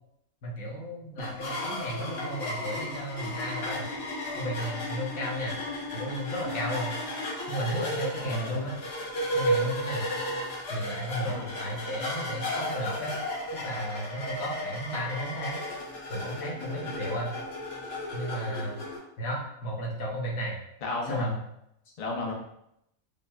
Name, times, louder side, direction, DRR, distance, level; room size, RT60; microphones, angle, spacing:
voice 1, 0.4-3.9 4.3-5.6 5.9-6.9 7.5-8.8 9.3-10.0 10.7-11.3 11.6-13.1 13.5-15.6 16.1-17.3 18.1-18.8 19.2-20.6 21.1-21.4, equal, 85° left, -2 dB, 1.4 m, -33 dB
sound 1, 1.2-19.0, left 1 dB, 50° left, 1.1 m, -34 dB
voice 2, 8.2-8.6 11.3-11.5 20.8-21.3 22.0-22.3, left 3 dB, 35° left, -1 dB, 0.6 m, -33 dB
5.3 x 2.4 x 2.3 m, 0.77 s
omnidirectional pair, 1.4 m